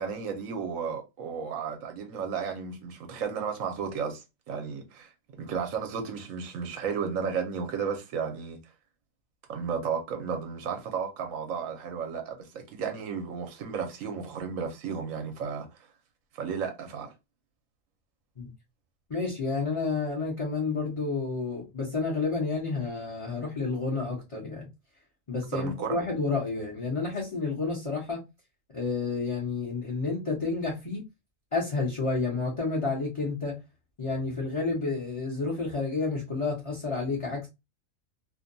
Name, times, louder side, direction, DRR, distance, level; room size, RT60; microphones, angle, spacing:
voice 1, 0.0-5.1 5.4-8.6 9.5-15.7 16.3-17.1 25.5-26.0, right 6 dB, 70° right, 1.0 m, -33 dB
voice 2, 19.1-24.6 25.3-28.2 28.7-31.0 31.5-33.6 34.0-37.5, left 4 dB, 30° left, 0.6 m, -30 dB
2.7 x 2.2 x 2.5 m
omnidirectional pair, 1.4 m